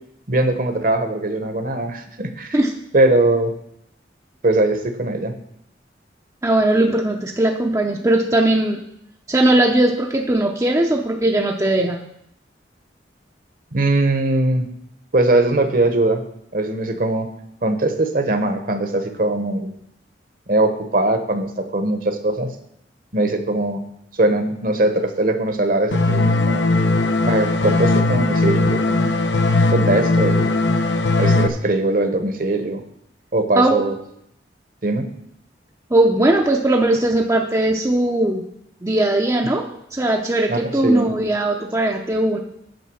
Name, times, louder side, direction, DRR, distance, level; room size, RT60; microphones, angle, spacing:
voice 1, 0.3-2.6 2.9-3.5 4.4-5.3 13.7-14.7 15.1-16.2 16.5-17.3 17.6-19.7 20.5-22.5 23.1-23.8 24.1-26.6 27.2-29.1 29.7-30.5 31.2-32.8 33.3-33.9 34.8-35.1 40.5-41.1, right 2 dB, 50° right, 7 dB, 1.1 m, -20 dB
voice 2, 6.4-8.8 9.3-12.1 33.6-33.8 35.9-38.4 38.8-39.7 39.9-42.4, right 1 dB, 15° right, 1 dB, 0.7 m, -19 dB
sound 1, 25.9-31.5, left 2 dB, 75° left, 0.9 m, -18 dB
9.2 x 6.3 x 6.3 m, 0.75 s
head